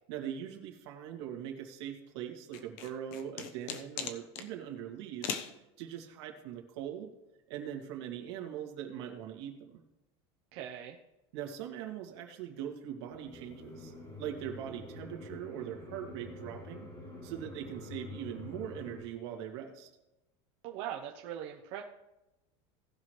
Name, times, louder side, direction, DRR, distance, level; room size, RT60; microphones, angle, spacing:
voice 1, 0.1-5.4 5.8-7.1 7.5-9.8 11.3-16.9 17.2-19.9, right 10 dB, 70° right, 2 dB, 2.1 m, -41 dB
sound 1, 2.5-4.5 5.2-5.5, left 7 dB, 55° left, 1.1 m, -38 dB
voice 2, 10.5-11.0 20.6-21.8, right 10 dB, 45° right, 0 dB, 0.9 m, -40 dB
sound 2, 13.1-19.0, left 2 dB, 25° left, 2.9 m, -47 dB
18.5 x 6.3 x 3.2 m, 0.98 s
supercardioid pair, 170°, 15 cm